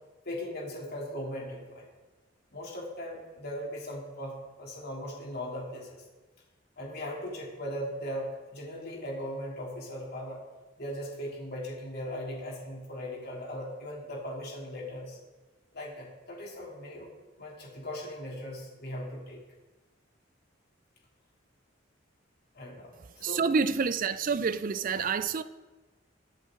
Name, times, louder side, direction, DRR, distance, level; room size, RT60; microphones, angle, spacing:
voice 1, 0.2-1.9 2.5-6.0 6.8-10.4 10.8-15.2 15.7-17.1 17.4-19.4 22.5-22.9 23.2-23.4, equal, 55° left, 3.3 m, -38 dB
voice 2, 23.2-25.4, right 5 dB, 45° right, 0.5 m, -28 dB
23.0 x 8.1 x 3.9 m
head